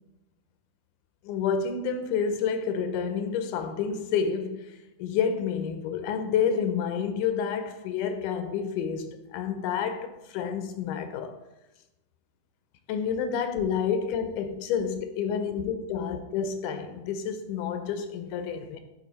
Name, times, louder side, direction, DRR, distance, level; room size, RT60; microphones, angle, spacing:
voice 1, 1.2-11.4 12.9-18.8, left 7 dB, 80° left, 2.0 m, -29 dB
9.5 x 4.0 x 4.0 m
omnidirectional pair, 3.8 m